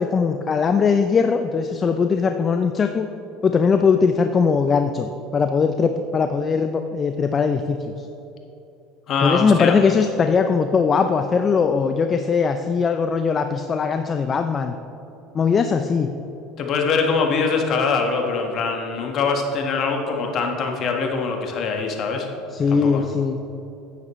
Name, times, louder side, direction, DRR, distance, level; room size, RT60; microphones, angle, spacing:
voice 1, 0.0-3.1 3.4-8.1 9.2-14.8 15.3-16.1 22.5-23.4, left 5 dB, 30° left, 7 dB, 0.4 m, -20 dB
voice 2, 9.1-9.8 16.6-22.3 22.7-23.0, left 4 dB, 50° left, 2 dB, 1.4 m, -23 dB
9.7 x 9.3 x 3.1 m, 2.9 s
supercardioid pair, 95°, 0 cm